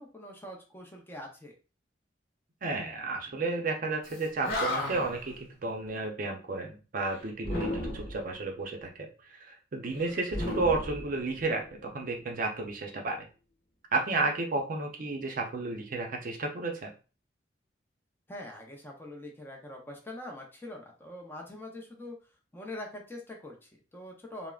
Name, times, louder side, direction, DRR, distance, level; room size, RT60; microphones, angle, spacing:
voice 1, 0.0-1.6 10.0-10.3 18.3-22.2 22.5-24.5, left 1 dB, 10° left, 0 dB, 0.5 m, -44 dB
voice 2, 2.6-13.3 13.9-16.9, right 3 dB, 50° right, 2 dB, 0.5 m, -32 dB
Animal, 4.1-4.2 4.4-5.2 7.4-8.3 10.3-11.6, left 1 dB, 60° left, 1.2 m, -33 dB
3.4 x 2.0 x 2.3 m, 0.34 s
head